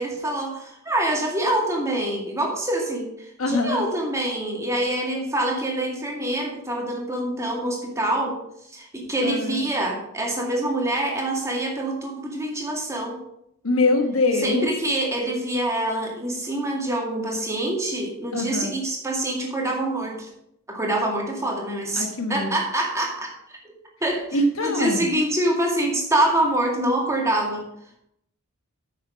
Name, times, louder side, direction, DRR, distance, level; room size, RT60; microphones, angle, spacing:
voice 1, 0.0-8.4 8.7-13.2 14.3-20.3 20.7-23.3 24.0-27.7, right 1 dB, 15° right, -1 dB, 2.1 m, -25 dB
voice 2, 3.4-3.8 9.2-9.6 13.6-14.7 18.3-18.7 22.0-22.6 24.3-25.1, left 2 dB, 75° left, 5 dB, 1.3 m, -23 dB
9.0 x 6.7 x 6.1 m, 0.78 s
head